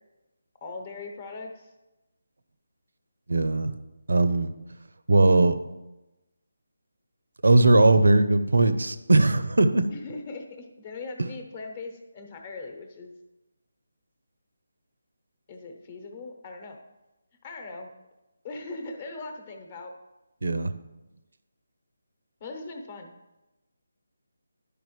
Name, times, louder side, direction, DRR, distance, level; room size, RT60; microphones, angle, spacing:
voice 1, 0.6-1.7 9.9-13.2 15.5-16.8 17.4-17.9 18.4-19.9 22.4-23.1, left 3 dB, 30° left, 4 dB, 1.0 m, -40 dB
voice 2, 3.3-3.7 4.1-4.5 5.1-5.6 7.4-9.9 20.4-20.7, right 2 dB, 80° right, 11 dB, 0.6 m, -19 dB
11.0 x 4.9 x 3.2 m, 1.0 s
figure-of-eight pair, 160°, 0 cm